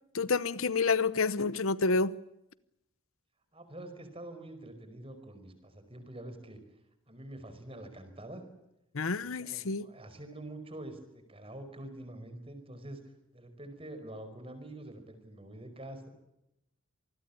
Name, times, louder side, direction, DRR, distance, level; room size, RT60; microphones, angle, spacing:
voice 1, 0.1-2.1 8.9-9.9, left 4 dB, 70° left, 0.8 m, -29 dB
voice 2, 3.5-6.6 7.1-8.4 9.2-13.0 13.3-16.1, right 1 dB, 25° right, 5.0 m, -46 dB
27.0 x 20.5 x 8.6 m
head